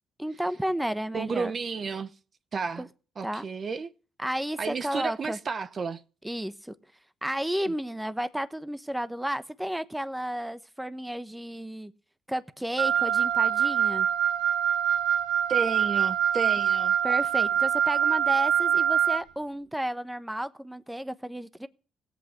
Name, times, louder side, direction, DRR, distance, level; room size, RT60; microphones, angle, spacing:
voice 1, 0.2-1.5 2.8-2.9 3.2-3.5 4.2-5.4 6.2-6.7 7.2-11.9 12.3-14.1 17.0-21.7, equal, 5° right, 1.0 m, -32 dB
voice 2, 1.1-2.1 2.5-2.9 3.2-3.9 4.6-6.0 7.7-7.8 15.5-17.0, right 5 dB, 45° right, 0.9 m, -32 dB
Wind instrument woodwind instrument, 12.8-19.2, right 9 dB, 80° right, 0.7 m, -24 dB
17.0 x 8.2 x 7.8 m
cardioid pair, 90°, 0 cm